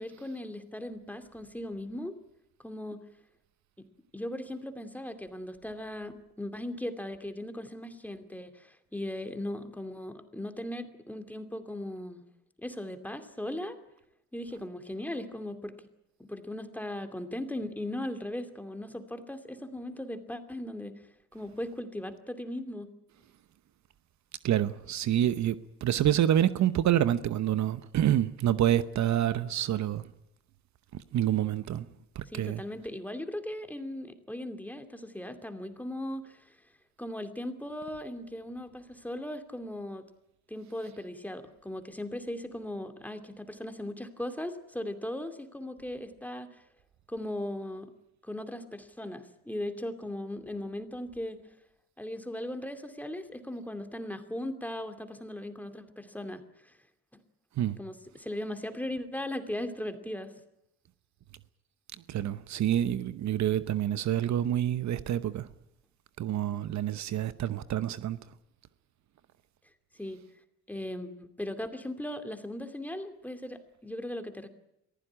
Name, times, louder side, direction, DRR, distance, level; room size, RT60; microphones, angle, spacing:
voice 1, 0.0-2.1 2.6-3.0 4.1-12.2 12.6-13.8 14.3-15.7 16.2-20.9 21.3-22.9 32.3-36.4 37.0-40.0 40.5-46.5 47.1-47.9 48.2-51.4 52.0-56.8 57.8-60.3 70.0-70.2 70.7-74.5, left 1 dB, 5° left, 2.5 m, -38 dB
voice 2, 24.4-30.0 30.9-31.9 32.2-32.6 57.6-57.8 62.1-65.5 66.2-68.2, right 11 dB, 65° right, 0.9 m, -27 dB
23.5 x 15.0 x 9.9 m
cardioid pair, 90°, 30 cm